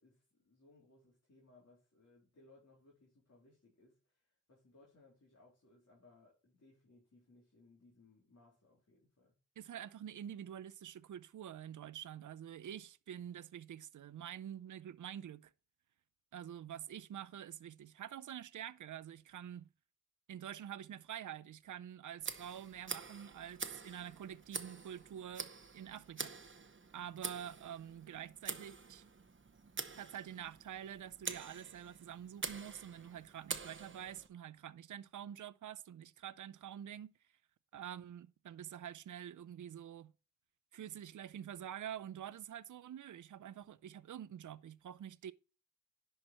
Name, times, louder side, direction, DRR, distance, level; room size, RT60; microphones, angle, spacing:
voice 1, 0.0-9.4, left 2 dB, 60° left, 3.6 m, -66 dB
voice 2, 9.6-15.5 16.3-19.7 20.3-26.3 26.9-29.0 30.0-37.1 37.7-40.1 40.7-45.3, right 10 dB, 80° right, 0.5 m, -47 dB
Tick, 22.2-34.3, right 4 dB, 40° right, 1.0 m, -47 dB
10.5 x 4.7 x 4.4 m
wide cardioid pair, 70°, 30 cm